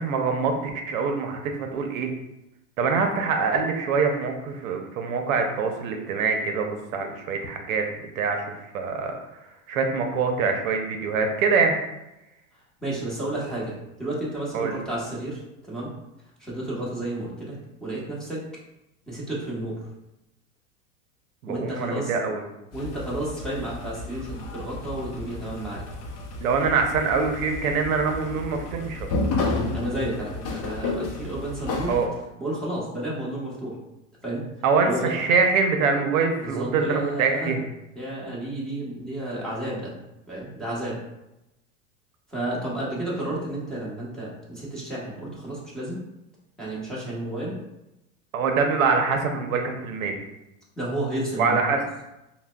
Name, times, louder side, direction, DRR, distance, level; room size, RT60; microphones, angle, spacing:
voice 1, 0.0-2.1 2.8-11.7 14.5-14.7 21.4-22.4 26.4-29.2 31.9-32.1 34.6-37.6 48.3-50.2 51.4-51.8, right 5 dB, 80° right, 4 dB, 0.7 m, -24 dB
voice 2, 12.8-15.9 16.4-18.4 19.1-19.8 21.5-22.1 22.7-25.8 29.5-32.0 32.4-33.8 34.2-34.4 34.8-35.1 36.4-37.5 37.9-40.0 40.3-41.0 42.3-46.0 46.6-47.6 50.8-51.6, right 1 dB, ahead, -8 dB, 1.1 m, -31 dB
sound 1, 22.7-32.1, left 3 dB, 40° left, 0.6 m, -32 dB
5.4 x 2.2 x 2.2 m, 0.92 s
supercardioid pair, 120°, 40 cm